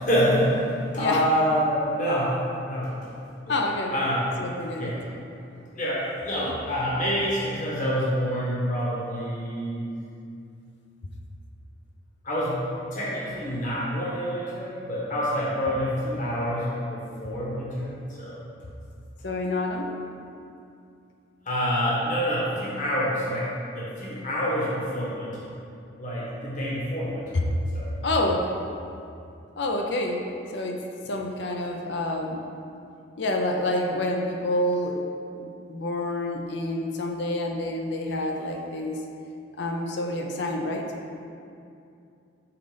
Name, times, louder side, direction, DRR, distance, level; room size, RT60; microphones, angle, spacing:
voice 1, 0.0-2.9 3.4-3.6 3.9-4.2 4.8-5.0 5.7-9.8 12.2-12.7 12.9-18.4 21.4-25.5 26.0-27.4 27.7-27.9, equal, 35° left, -6 dB, 1.3 m, -27 dB
voice 2, 3.5-3.9 4.4-4.9 19.2-19.9 27.3-27.5 28.0-28.5 29.6-30.2 30.5-32.4 33.2-35.0 35.3-39.0 39.6-40.9, left 1 dB, 55° left, 2 dB, 0.6 m, -28 dB
5.7 x 3.8 x 5.1 m, 2.5 s
head